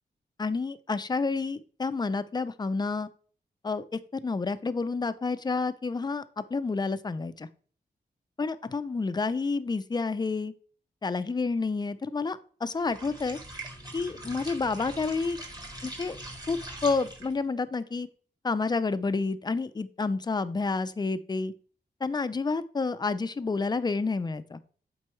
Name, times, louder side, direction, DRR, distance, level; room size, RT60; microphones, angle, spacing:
voice 1, 0.4-3.1 3.6-7.5 8.4-10.5 11.0-13.4 13.9-15.4 15.8-16.2 16.5-18.1 18.4-21.5 22.0-24.6, left 4 dB, 25° left, 13 dB, 0.4 m, -29 dB
sound 1, 12.8-17.4, right 1 dB, 20° right, 1.5 m, -42 dB
7.5 x 4.5 x 3.1 m, 0.43 s
wide cardioid pair, 80°, 18 cm